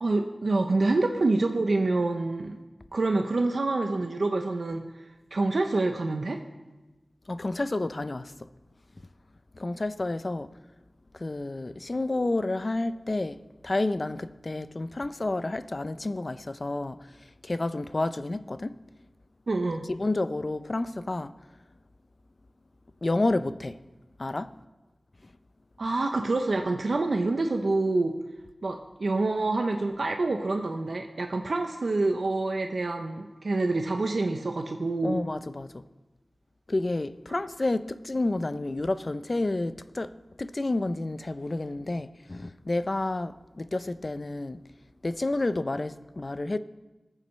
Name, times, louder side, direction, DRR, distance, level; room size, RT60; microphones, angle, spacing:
voice 1, 0.0-2.6 2.9-4.8 5.3-6.4 19.5-19.8 25.8-28.1 28.6-35.2 37.3-37.4, right 2 dB, 80° right, 0.6 m, -27 dB
voice 2, 7.3-8.5 9.5-10.5 11.1-13.4 13.6-18.8 19.9-21.3 23.0-23.8 24.2-24.5 25.2-25.3 35.0-35.8 36.7-40.1 40.4-44.6 45.0-46.6, left 2 dB, 55° left, 0.5 m, -30 dB
20.0 x 7.2 x 3.2 m
cardioid pair, 40°, 0 cm